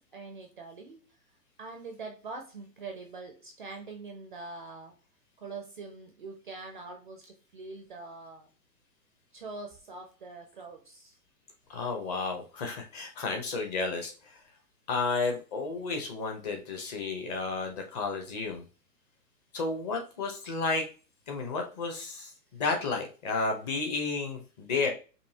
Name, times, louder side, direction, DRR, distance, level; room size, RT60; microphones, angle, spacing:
voice 1, 0.1-1.0 1.6-4.9 5.4-8.5 9.3-11.2, right 3 dB, 35° right, 3 dB, 0.4 m, -43 dB
voice 2, 11.7-14.4 14.9-18.6 19.5-20.8 21.3-24.9, left 4 dB, 25° left, 3 dB, 0.8 m, -32 dB
5.3 x 2.4 x 2.8 m, 0.34 s
hypercardioid pair, 140°, 50 cm